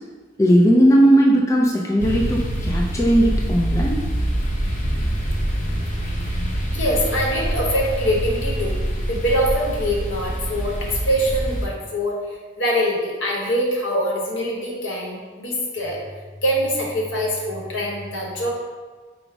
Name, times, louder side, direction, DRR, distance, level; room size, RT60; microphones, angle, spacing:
voice 1, 0.4-4.0, equal, 15° left, -2 dB, 0.3 m, -17 dB
sound 1, 2.0-11.7, right 1 dB, 40° left, 0.7 m, -25 dB
voice 2, 6.7-16.0 16.4-18.5, equal, 80° left, -3 dB, 0.9 m, -24 dB
5.1 x 2.0 x 4.5 m, 1.4 s
head